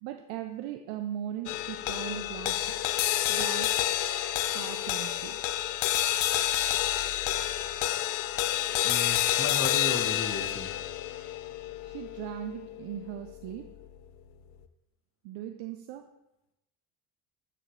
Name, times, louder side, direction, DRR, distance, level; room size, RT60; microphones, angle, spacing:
voice 1, 0.0-2.7 3.3-4.1 4.5-5.4 11.8-13.7 15.2-16.1, right 11 dB, 65° right, 7 dB, 0.7 m, -39 dB
sound 1, 1.5-14.0, left 13 dB, 80° left, 0.6 m, -29 dB
voice 2, 8.8-10.7, left 4 dB, 25° left, 7 dB, 1.2 m, -34 dB
8.6 x 6.6 x 3.2 m, 0.92 s
hypercardioid pair, 60°, 50 cm